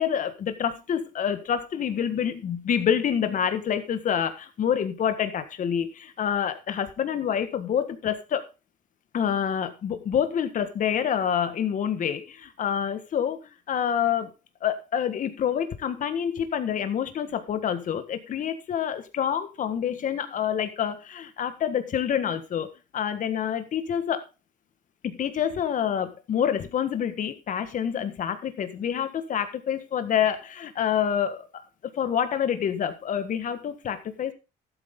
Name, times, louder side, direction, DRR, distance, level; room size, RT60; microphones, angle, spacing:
voice 1, 0.0-8.5 9.1-13.4 13.7-14.3 14.6-22.7 22.9-24.2 25.0-31.6 31.9-34.3, left 8 dB, 50° left, 10 dB, 1.6 m, -27 dB
13.0 x 8.4 x 3.8 m, 0.29 s
cardioid pair, 110°, 17 cm